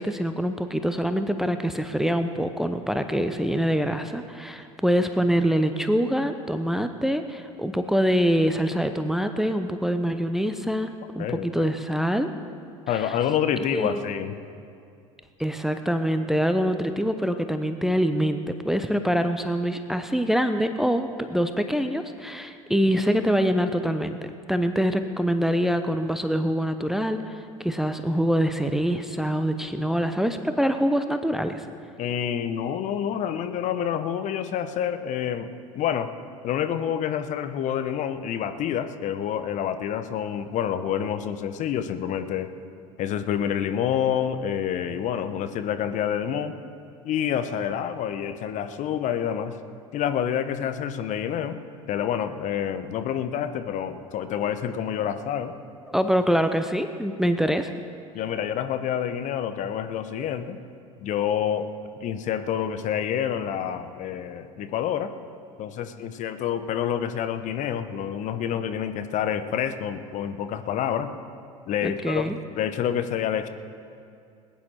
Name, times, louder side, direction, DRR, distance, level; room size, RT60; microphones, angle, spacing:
voice 1, 0.0-10.9 11.2-12.3 13.7-14.1 15.4-24.2 24.5-31.6 55.9-57.7 71.8-72.4, equal, ahead, 8 dB, 0.7 m, -25 dB
voice 2, 11.2-11.7 12.9-14.4 32.0-35.5 35.7-36.1 36.4-42.5 43.0-46.5 47.0-49.6 49.9-51.6 51.9-55.5 58.1-60.6 61.0-61.7 62.0-65.1 65.6-71.1 71.7-72.3 72.6-73.5, left 9 dB, 45° left, 10 dB, 0.9 m, -28 dB
20.5 x 10.5 x 4.4 m, 2.5 s
figure-of-eight pair, 70°, 18 cm